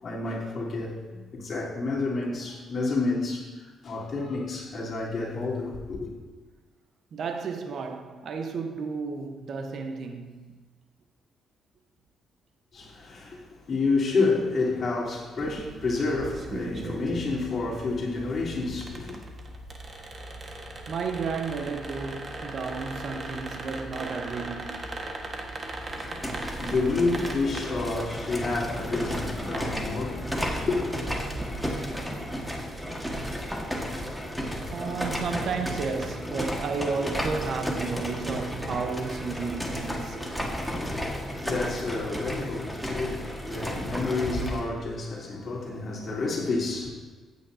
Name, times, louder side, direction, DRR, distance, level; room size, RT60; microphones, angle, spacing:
voice 1, 0.0-6.1 12.7-19.2 26.3-30.9 40.7-46.9, left 3 dB, 45° left, 3.5 m, -29 dB
voice 2, 7.1-10.4 20.9-24.8 34.7-40.2, right 5 dB, 60° right, 1.0 m, -32 dB
sound 1, 15.4-32.3, right 2 dB, 40° right, 1.5 m, -39 dB
sound 2, 25.8-44.7, equal, ahead, 1.6 m, -33 dB
14.5 x 9.6 x 2.8 m
cardioid pair, 90°, 0 cm